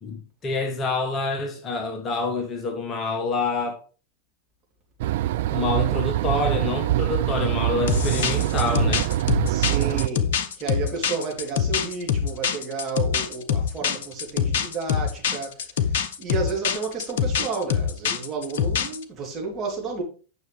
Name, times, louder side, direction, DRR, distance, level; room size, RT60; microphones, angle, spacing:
voice 1, 0.0-3.8 5.5-9.1, left 3 dB, 25° left, 1.4 m, -27 dB
sound 1, 5.0-10.1, right 14 dB, 55° right, 0.3 m, -24 dB
sound 2, 7.9-19.0, left 7 dB, 55° left, 0.8 m, -25 dB
voice 2, 9.5-20.0, right 4 dB, 25° right, 3.4 m, -32 dB
9.4 x 6.2 x 3.5 m
figure-of-eight pair, 90°, 0 cm